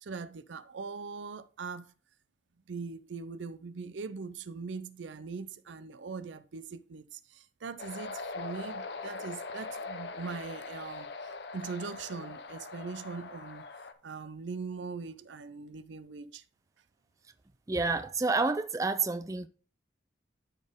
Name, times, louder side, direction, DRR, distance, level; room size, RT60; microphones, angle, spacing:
voice 1, 0.0-1.9 2.7-13.6 14.0-16.4, right 4 dB, 75° right, 0.5 m, -41 dB
sound 1, 7.8-13.9, left 3 dB, 60° left, 0.7 m, -41 dB
voice 2, 17.7-19.5, right 3 dB, 15° right, 0.4 m, -29 dB
12.5 x 4.3 x 3.6 m
head